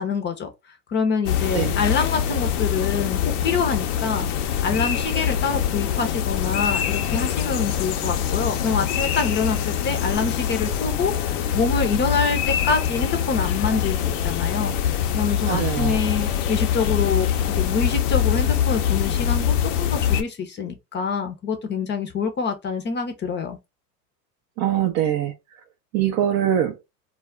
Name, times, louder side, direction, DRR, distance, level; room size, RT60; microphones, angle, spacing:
voice 1, 0.0-23.6, left 5 dB, 25° left, 0.5 m, -26 dB
sound 1, 1.3-20.2, left 9 dB, 65° left, 0.6 m, -24 dB
voice 2, 15.5-16.0 24.6-25.6 25.9-26.8, right 10 dB, 35° right, 0.4 m, -23 dB
2.3 x 2.0 x 3.5 m
hypercardioid pair, 100°, 48 cm